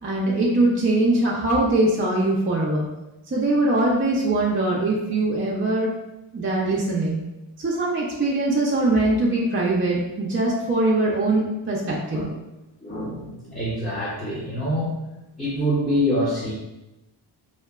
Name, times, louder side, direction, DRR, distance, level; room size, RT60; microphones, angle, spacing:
voice 1, 0.0-2.9 3.3-5.9 6.3-7.2 7.6-12.3, right 2 dB, 25° right, -4 dB, 0.4 m, -22 dB
voice 2, 12.8-14.9 15.4-16.5, equal, 15° left, -7 dB, 0.7 m, -25 dB
2.7 x 2.1 x 2.3 m, 0.97 s
cardioid pair, 60°, 50 cm